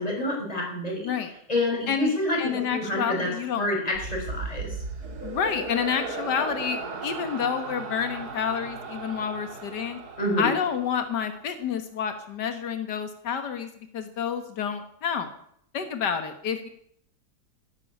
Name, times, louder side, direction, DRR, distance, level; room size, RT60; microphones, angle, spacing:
voice 1, 0.0-1.1 1.5-4.8 10.2-10.5, left 1 dB, 20° left, -2 dB, 5.9 m, -28 dB
voice 2, 2.4-3.7 5.2-10.0 10.4-15.3 15.7-16.7, left 7 dB, 90° left, 8 dB, 1.9 m, -29 dB
sound 1, 3.9-11.3, right 3 dB, 70° right, 2.3 m, -36 dB
14.0 x 10.5 x 8.8 m, 0.69 s
omnidirectional pair, 1.8 m